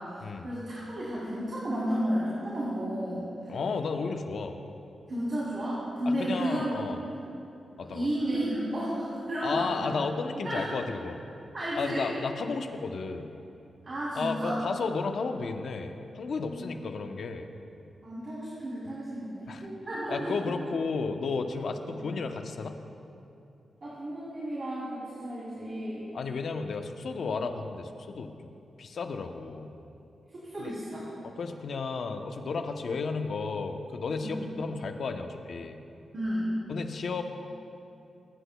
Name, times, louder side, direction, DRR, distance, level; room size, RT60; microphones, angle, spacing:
voice 1, 0.0-3.6 5.1-6.7 7.7-9.9 10.4-10.6 11.5-12.1 13.8-14.7 16.5-16.7 18.0-20.5 21.9-22.1 23.8-26.2 30.4-31.1 34.2-34.4 36.1-36.5, equal, 45° right, -8 dB, 3.1 m, -33 dB
voice 2, 3.5-4.5 6.1-7.0 7.8-8.1 9.4-11.2 11.7-13.3 14.2-17.5 19.5-19.6 20.1-22.8 26.1-28.3 28.8-29.7 30.6-30.7 31.2-35.8 36.7-37.2, left 4 dB, 65° left, 5 dB, 0.8 m, -33 dB
24.0 x 10.0 x 2.3 m, 2.8 s
wide cardioid pair, 125°, 0 cm